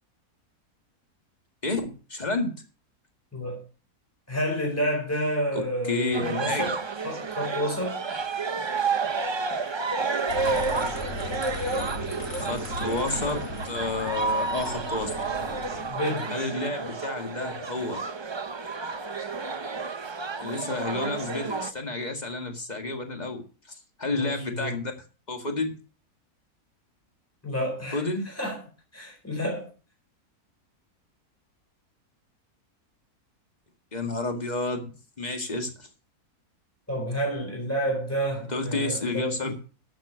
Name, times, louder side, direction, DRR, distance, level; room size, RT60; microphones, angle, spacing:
voice 1, 1.6-2.5 5.5-5.6 5.9-6.7 12.3-15.1 16.3-18.0 20.4-23.4 23.7-24.9 25.3-25.7 27.9-28.2 33.9-35.9 38.5-39.5, left 2 dB, 25° left, 5 dB, 2.0 m, -30 dB
voice 2, 4.3-8.0 15.9-16.4 24.2-24.8 27.4-28.0 28.4-28.6 28.9-29.7 36.9-39.5, equal, 10° left, -1 dB, 4.6 m, -30 dB
sound 1, 6.1-21.7, right 4 dB, 40° right, 0.4 m, -30 dB
sound 2, 10.3-15.9, left 2 dB, 55° left, 3.4 m, -37 dB
12.0 x 7.2 x 6.3 m, 0.36 s
omnidirectional pair, 1.6 m